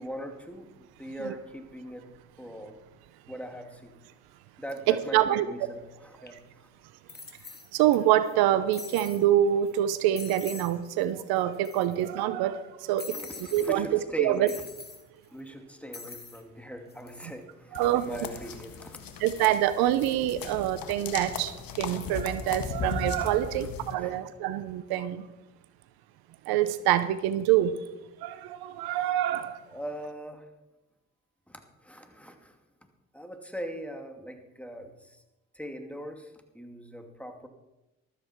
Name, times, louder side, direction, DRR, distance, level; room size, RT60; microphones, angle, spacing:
voice 1, 0.0-2.1 2.4-2.8 3.3-3.9 4.6-6.7 13.1-14.6 15.3-19.0 23.5-23.7 24.0-24.2 29.7-30.5 31.5-32.6 33.1-35.2 35.5-37.5, equal, 5° left, 5 dB, 2.5 m, -41 dB
voice 2, 4.9-5.5 6.3-6.4 7.7-13.9 14.2-14.5 17.7-18.1 19.2-25.3 26.5-27.8 28.2-29.6, right 12 dB, 80° right, 14 dB, 0.8 m, -26 dB
sound 1, 6.3-6.4 7.1-8.0 8.3-8.4 8.7-9.2 9.7-9.8 10.2-10.7 11.0-11.1 11.4-12.1 13.0-13.7 14.5-15.0 15.9-16.4 16.9-17.3, left 4 dB, 25° left, 2.4 m, -43 dB
sound 2, 17.7-23.9, left 6 dB, 65° left, 1.7 m, -38 dB
14.0 x 13.0 x 4.6 m, 0.98 s
hypercardioid pair, 50°, 37 cm